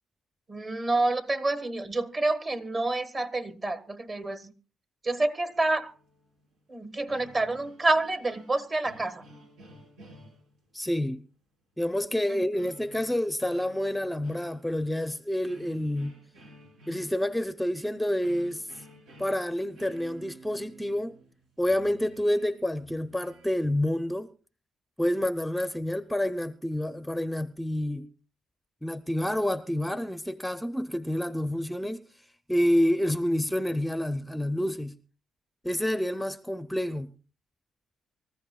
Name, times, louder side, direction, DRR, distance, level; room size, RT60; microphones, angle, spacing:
voice 1, 0.5-4.5 5.0-5.9 6.7-9.2, right 2 dB, 35° right, 1.4 m, -28 dB
sound 1, 5.5-6.6 6.9-10.9 12.5-15.1 15.4-23.5, equal, 90° right, 5.2 m, -53 dB
voice 2, 10.7-11.2 11.8-16.2 16.9-18.7 19.2-21.2 21.6-24.3 25.0-28.1 28.8-32.0 32.5-34.9 35.6-37.1, left 1 dB, 5° left, 0.6 m, -28 dB
24.5 x 14.0 x 2.3 m
cardioid pair, 90°, 0 cm